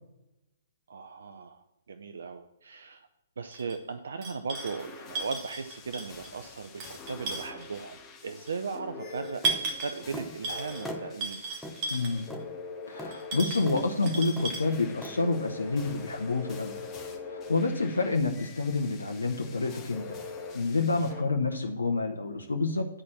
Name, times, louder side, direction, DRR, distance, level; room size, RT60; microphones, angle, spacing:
voice 1, 0.9-3.1 3.4-11.4 21.0-21.3, right 5 dB, 65° right, 10 dB, 0.5 m, -38 dB
sound 1, 3.5-3.8 4.2-4.8 5.1-6.3 6.6-7.8 8.5-8.6 9.2-10.0 10.4-10.9 11.2-12.3 13.1-14.6, right 3 dB, 30° right, 1.7 m, -34 dB
sound 2, 4.5-21.2, left 4 dB, 20° left, 1.3 m, -44 dB
sound 3, 9.4-9.6 10.1-10.3 10.9-11.1 11.6-11.8 12.3-12.5 13.0-13.1 13.7-13.8 14.4-14.6 15.0-15.2, equal, 5° left, 1.0 m, -38 dB
voice 2, 11.9-12.3 12.9-16.8 17.3-20.2 20.5-22.9, left 3 dB, 80° left, 3 dB, 0.8 m, -28 dB
10.0 x 4.3 x 7.3 m, 0.92 s
figure-of-eight pair, 125°, 0 cm